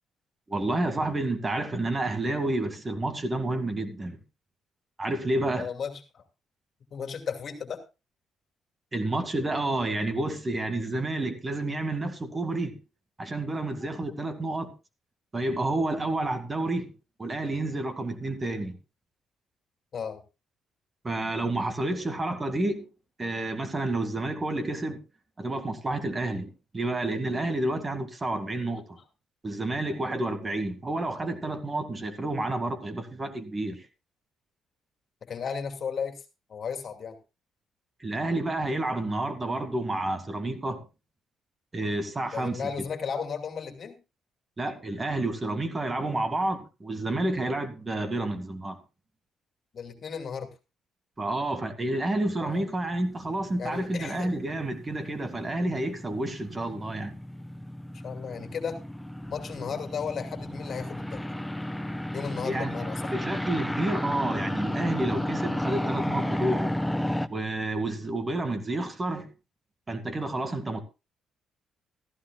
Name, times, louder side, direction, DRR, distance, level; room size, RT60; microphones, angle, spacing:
voice 1, 0.5-4.2 5.0-5.7 8.9-12.8 13.2-14.7 15.3-16.9 17.2-18.8 21.0-22.8 23.2-25.0 25.4-29.0 29.4-33.9 38.0-40.8 41.7-42.7 44.6-48.8 51.2-57.2 62.4-62.8 63.1-66.8 67.3-69.3 69.9-70.8, right 2 dB, 25° right, 2.0 m, -30 dB
voice 2, 5.6-6.2 6.9-7.8 13.8-13.9 19.9-20.2 35.2-36.2 36.5-37.2 42.3-44.0 49.7-50.5 52.4-52.7 53.6-54.3 58.0-58.8 59.3-61.3 62.1-63.1, left 6 dB, 55° left, 2.4 m, -35 dB
sound 1, 52.6-67.3, left 1 dB, 5° left, 0.7 m, -33 dB
15.0 x 14.5 x 2.3 m
cardioid pair, 90°, 0 cm